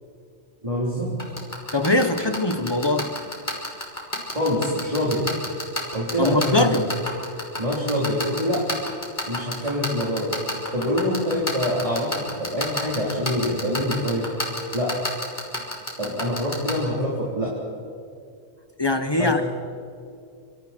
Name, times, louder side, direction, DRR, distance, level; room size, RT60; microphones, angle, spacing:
voice 1, 0.6-1.1 4.3-5.3 5.9-6.8 7.6-8.7 9.2-10.3 10.7-14.3 14.7-15.0 16.0-17.5 19.2-19.4, left 1 dB, 30° right, -5 dB, 4.1 m, -25 dB
sound 1, 1.2-16.7, left 1 dB, 45° left, 4.2 m, -27 dB
voice 2, 1.7-3.1 6.2-6.9 18.8-19.4, left 2 dB, 25° left, 8 dB, 1.2 m, -22 dB
26.0 x 26.0 x 4.6 m, 2.3 s
omnidirectional pair, 1.2 m